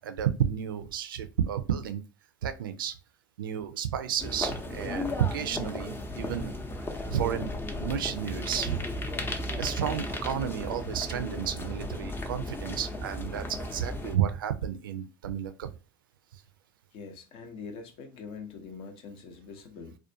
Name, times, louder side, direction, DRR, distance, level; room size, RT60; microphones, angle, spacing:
voice 1, 0.0-2.0 2.4-3.0 3.4-6.6 7.1-8.9 9.6-15.7, right 9 dB, 80° right, 0.4 m, -32 dB
sound 1, 4.2-14.2, left 1 dB, 20° left, 0.6 m, -35 dB
voice 2, 16.9-20.0, left 5 dB, 55° left, 0.7 m, -43 dB
2.4 x 2.2 x 2.6 m
hypercardioid pair, 75°, 11 cm